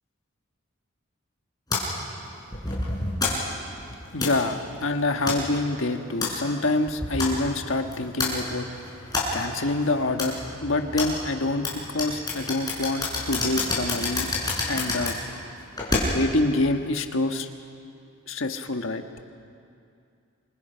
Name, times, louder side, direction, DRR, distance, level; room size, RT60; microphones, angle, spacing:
sound 1, 1.7-16.4, left 2 dB, 20° left, 6.2 m, -30 dB
voice 1, 4.1-8.7 9.3-14.3 14.7-15.2 16.1-17.5 18.3-19.0, left 2 dB, 70° left, 6 dB, 1.5 m, -26 dB
28.0 x 26.0 x 5.8 m, 2.4 s
head